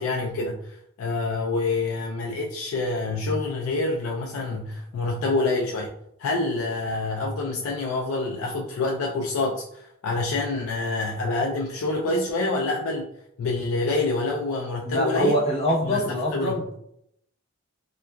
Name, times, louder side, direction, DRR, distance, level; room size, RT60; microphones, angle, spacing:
voice 1, 0.0-5.9 6.2-13.1 13.4-15.4 15.8-16.6, left 3 dB, 70° left, -1 dB, 0.3 m, -27 dB
voice 2, 14.8-16.7, equal, 30° left, -5 dB, 0.7 m, -24 dB
2.8 x 2.2 x 2.2 m, 0.75 s
head